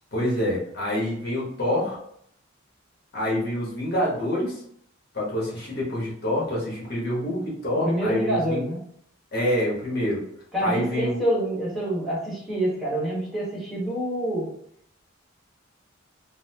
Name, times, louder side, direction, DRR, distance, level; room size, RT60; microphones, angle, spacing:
voice 1, 0.1-2.0 3.1-4.6 5.1-8.6 9.3-10.2 10.6-11.2, left 1 dB, 50° left, -5 dB, 1.2 m, -26 dB
voice 2, 7.8-8.8 10.5-14.5, right 1 dB, ahead, -8 dB, 1.3 m, -26 dB
4.0 x 2.1 x 2.8 m, 0.69 s
head